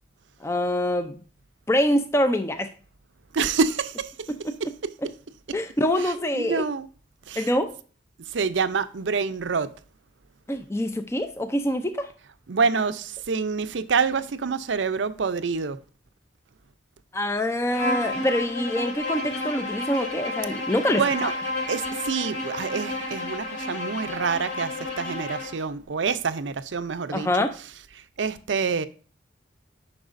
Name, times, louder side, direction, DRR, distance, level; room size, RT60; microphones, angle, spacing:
voice 1, 0.4-1.1 1.7-2.7 4.4-4.5 5.5-6.7 7.4-7.7 10.5-12.1 17.1-21.3 27.1-27.5, left 1 dB, 15° left, 0.5 m, -25 dB
voice 2, 3.3-4.1 6.3-6.9 7.3-7.5 8.3-9.7 12.5-15.8 21.0-21.3 21.7-24.7 25.0-27.3 28.2-28.9, right 5 dB, 80° right, 0.6 m, -26 dB
Bowed string instrument, 17.7-25.6, left 2 dB, 85° left, 2.4 m, -31 dB
8.9 x 5.9 x 2.6 m
head